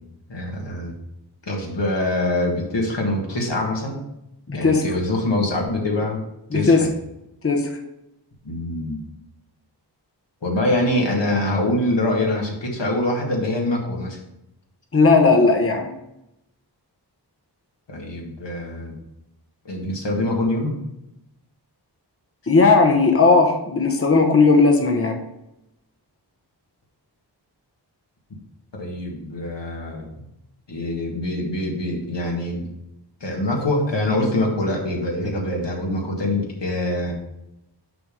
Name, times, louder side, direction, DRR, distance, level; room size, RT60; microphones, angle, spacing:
voice 1, 0.3-0.9 1.5-4.0 4.5-6.2 6.5-6.9 8.4-9.0 10.4-14.2 17.9-19.0 19.7-20.7 28.8-30.3 30.7-32.7 33.2-37.1, left 1 dB, 80° left, -1 dB, 1.7 m, -24 dB
voice 2, 4.5-4.8 6.5-6.8 7.4-7.7 14.9-15.9 22.5-25.2, left 4 dB, 30° left, 3 dB, 1.0 m, -16 dB
6.0 x 5.1 x 5.2 m, 0.86 s
wide cardioid pair, 55°, 42 cm